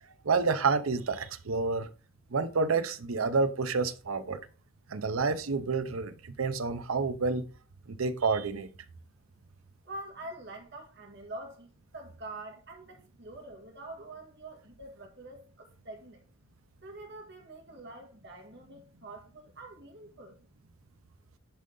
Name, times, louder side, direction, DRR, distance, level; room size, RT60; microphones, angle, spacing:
voice 1, 0.2-1.9 2.3-4.4 4.9-7.5 7.9-8.7, right 4 dB, 85° right, 0.7 m, -29 dB
voice 2, 9.8-11.7 11.9-16.2 16.8-20.4, right 2 dB, 55° right, 2.0 m, -45 dB
10.0 x 3.8 x 3.9 m
head